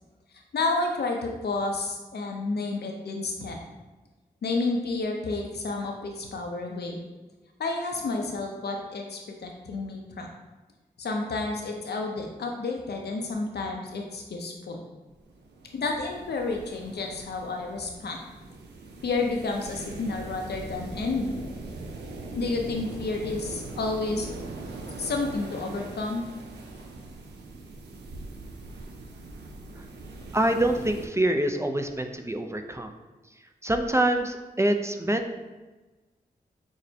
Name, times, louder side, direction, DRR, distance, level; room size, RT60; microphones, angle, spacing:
voice 1, 0.5-3.6 4.4-7.0 7.6-10.3 11.0-14.8 15.7-18.2 19.0-21.4 22.3-24.3 25.0-26.3, left 3 dB, 75° left, 2 dB, 0.6 m, -30 dB
sound 1, 15.1-31.1, right 3 dB, 90° right, 0.5 m, -41 dB
voice 2, 30.3-32.9 33.6-35.3, right 1 dB, 15° right, 6 dB, 0.4 m, -25 dB
6.2 x 2.1 x 2.7 m, 1.2 s
cardioid pair, 40°, 17 cm